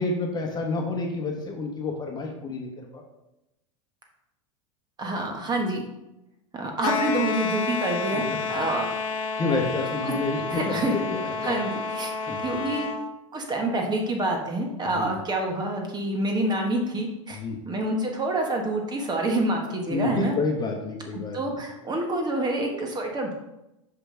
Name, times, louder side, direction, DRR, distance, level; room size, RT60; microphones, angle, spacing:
voice 1, 0.0-3.0 8.1-8.2 9.4-11.6 12.3-12.6 14.9-15.1 17.3-17.6 19.9-21.6, left 3 dB, 25° left, 2 dB, 1.2 m, -29 dB
voice 2, 5.0-5.8 6.5-8.2 8.5-8.9 10.0-10.1 10.5-10.9 11.4-12.1 12.4-12.9 13.3-17.4 17.7-20.3 21.1-23.3, right 2 dB, 25° right, 2 dB, 1.2 m, -27 dB
sound 1, 6.8-13.0, left 4 dB, 75° left, 0.7 m, -30 dB
5.9 x 5.0 x 3.8 m, 0.91 s
hypercardioid pair, 105°, 17 cm